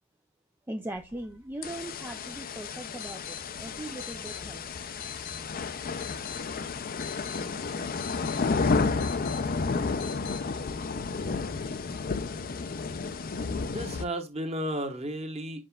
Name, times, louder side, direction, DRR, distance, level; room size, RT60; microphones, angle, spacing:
voice 1, 0.7-4.9, right 1 dB, 10° right, 0.4 m, -40 dB
sound 1, 0.9-10.4, left 9 dB, 65° left, 1.0 m, -47 dB
sound 2, 1.6-14.0, left 4 dB, 45° left, 0.5 m, -31 dB
voice 2, 13.5-15.7, right 1 dB, 30° right, 1.3 m, -34 dB
7.6 x 5.4 x 2.3 m
head